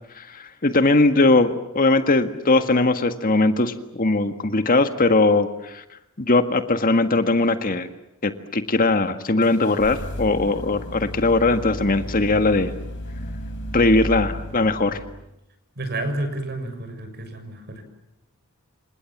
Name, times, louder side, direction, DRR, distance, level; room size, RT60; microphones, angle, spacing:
voice 1, 0.2-5.8 6.2-7.9 8.2-12.7 13.7-15.0, left 2 dB, 40° left, 9 dB, 1.7 m, -20 dB
sound 1, 9.4-15.3, equal, 55° left, 4.7 m, -33 dB
voice 2, 15.8-17.8, right 1 dB, 50° right, 8 dB, 6.7 m, -30 dB
28.5 x 27.0 x 7.3 m, 0.87 s
head